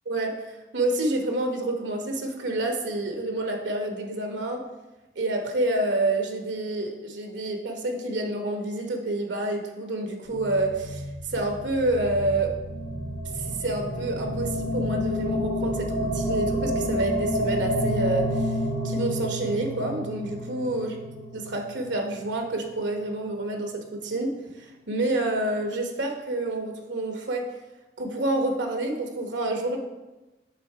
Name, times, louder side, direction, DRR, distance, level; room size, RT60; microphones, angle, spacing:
voice 1, 0.1-4.6 5.2-12.5 13.4-20.9 21.3-27.5 28.0-29.8, right 2 dB, 85° right, 3 dB, 1.0 m, -28 dB
sound 1, 10.3-22.5, equal, 35° left, 2.2 m, -30 dB
6.2 x 3.6 x 4.6 m, 1.1 s
head